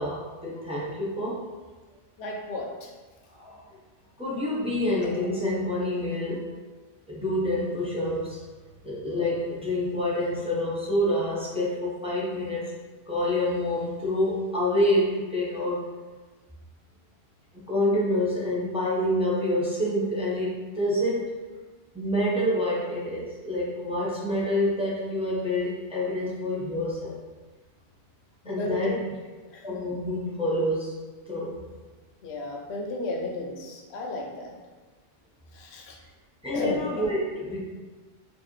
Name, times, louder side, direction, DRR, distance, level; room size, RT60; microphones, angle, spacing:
voice 1, 0.0-1.4 3.3-3.6 4.2-6.5 7.1-8.4 8.8-12.7 13.1-15.9 17.7-21.3 21.9-27.2 28.4-28.9 29.6-31.0 31.3-31.6 36.4-37.6, left 1 dB, 5° right, -7 dB, 0.7 m, -27 dB
voice 2, 2.2-2.9 28.4-29.0 29.5-29.6 32.2-34.5 35.5-36.0 36.5-36.8, left 2 dB, 80° left, 1 dB, 0.9 m, -33 dB
4.6 x 2.6 x 3.0 m, 1.3 s
omnidirectional pair, 1.1 m